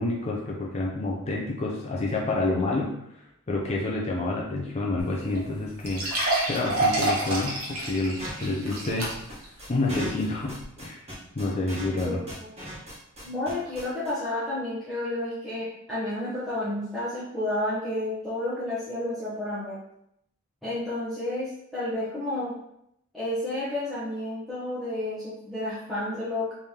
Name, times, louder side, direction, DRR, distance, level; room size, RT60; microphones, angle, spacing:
voice 1, 0.0-2.9 3.5-6.0 6.4-9.1 9.7-11.0 11.3-12.2, left 2 dB, 30° left, -3 dB, 0.5 m, -28 dB
sound 1, 5.0-5.1 5.4-5.5 5.8-9.5 9.9-10.0 10.6-10.7, right 2 dB, 85° right, 1.2 m, -28 dB
sound 2, 8.2-14.1, equal, 30° right, 1.3 m, -38 dB
voice 2, 12.0-12.5 13.2-19.8 20.6-22.5 23.1-26.5, left 1 dB, ahead, -12 dB, 1.0 m, -31 dB
3.6 x 3.3 x 2.8 m, 0.77 s
head